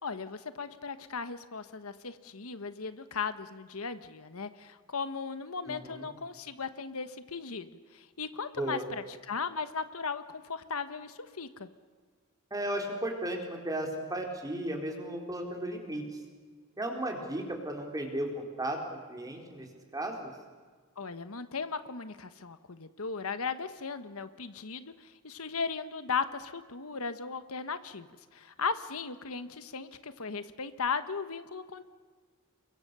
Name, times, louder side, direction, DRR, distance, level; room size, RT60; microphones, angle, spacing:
voice 1, 0.0-11.7 21.0-28.1 28.3-31.8, left 5 dB, 70° left, 11 dB, 1.3 m, -37 dB
voice 2, 5.7-6.1 8.6-8.9 12.5-16.0 16.8-19.7 19.9-20.3, right 1 dB, 15° right, 2 dB, 4.3 m, -35 dB
29.5 x 23.0 x 6.9 m, 1.6 s
head